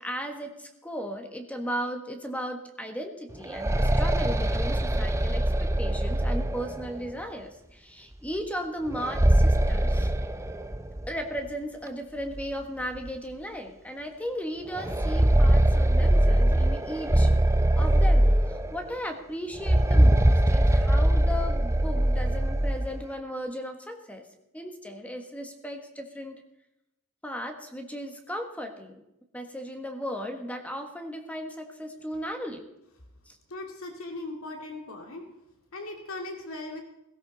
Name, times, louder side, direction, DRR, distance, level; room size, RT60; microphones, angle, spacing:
voice 1, 0.0-10.1 11.1-17.3 17.7-24.3 24.5-26.4 27.2-29.0 29.3-32.6 33.3-33.4, equal, 5° left, 4 dB, 1.5 m, -36 dB
sound 1, 3.3-7.1 8.9-11.1 11.4-11.5 12.4-12.5 13.0-13.1 14.7-18.9 19.5-22.9, right 1 dB, 15° right, 0.6 m, -22 dB
voice 2, 33.5-35.2 35.7-36.8, left 2 dB, 70° left, 2 dB, 2.4 m, -38 dB
16.5 x 16.5 x 4.1 m, 0.86 s
head